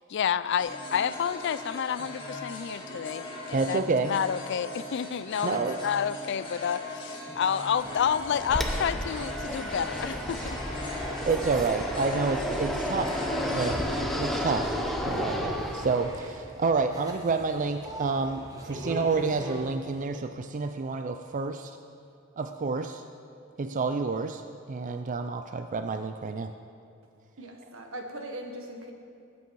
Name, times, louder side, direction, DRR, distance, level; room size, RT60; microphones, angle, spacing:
voice 1, 0.0-10.6, left 8 dB, 60° left, 16 dB, 0.4 m, -30 dB
sound 1, 0.6-14.0, left 2 dB, 25° left, 2.0 m, -39 dB
voice 2, 3.5-4.1 5.4-5.8 11.1-13.2 13.5-13.8 14.2-14.8 15.1-21.8 22.4-23.0 23.6-24.4 24.7-26.5, right 4 dB, 40° right, 7 dB, 0.4 m, -29 dB
sound 2, 7.8-19.8, equal, 15° right, 1.4 m, -44 dB
Fixed-wing aircraft airplane, 8.5-16.3, equal, ahead, 1.0 m, -32 dB
voice 3, 27.4-28.9, right 1 dB, 75° right, 3 dB, 1.5 m, -40 dB
19.5 x 8.4 x 4.7 m, 2.5 s
head